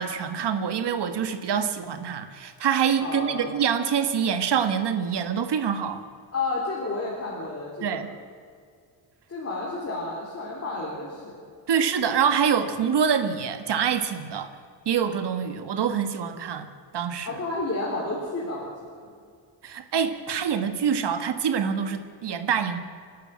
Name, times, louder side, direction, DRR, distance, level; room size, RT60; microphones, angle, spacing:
voice 1, 0.0-6.0 7.8-8.1 11.7-14.5 14.9-16.7 16.9-17.4 19.6-22.8, right 7 dB, 65° right, 8 dB, 1.8 m, -25 dB
voice 2, 3.0-3.5 6.3-8.1 9.3-11.3 17.3-18.7, left 2 dB, 35° left, -4 dB, 3.7 m, -31 dB
30.0 x 11.5 x 7.7 m, 2.1 s
wide cardioid pair, 155°, 45 cm